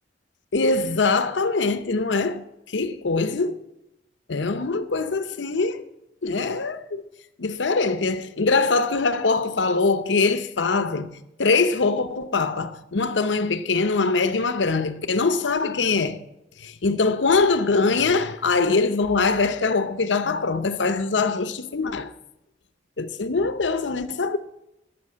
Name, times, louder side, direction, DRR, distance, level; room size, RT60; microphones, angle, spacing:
voice 1, 0.5-2.4 2.7-3.6 4.3-5.8 6.2-7.0 7.4-11.1 11.4-16.2 16.6-22.1 23.0-24.4, left 4 dB, 80° left, 0.8 m, -23 dB
13.0 x 5.8 x 8.5 m
head